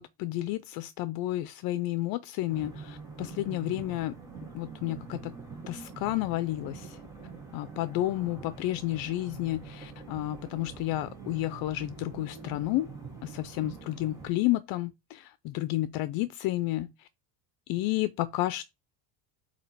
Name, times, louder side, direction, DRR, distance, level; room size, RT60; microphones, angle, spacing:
voice 1, 0.0-4.1 4.5-5.3 5.7-7.0 7.5-12.9 13.2-16.9 17.7-18.6, left 16 dB, 60° left, 0.5 m, -31 dB
sound 1, 2.5-14.3, right 4 dB, 10° right, 2.3 m, -45 dB
sound 2, 4.9-5.8 6.8-7.0 7.6-7.8 8.4-8.6 9.8-10.5 11.8-12.6, right 5 dB, 25° right, 1.2 m, -54 dB
8.0 x 2.9 x 4.5 m
cardioid pair, 140°, 41 cm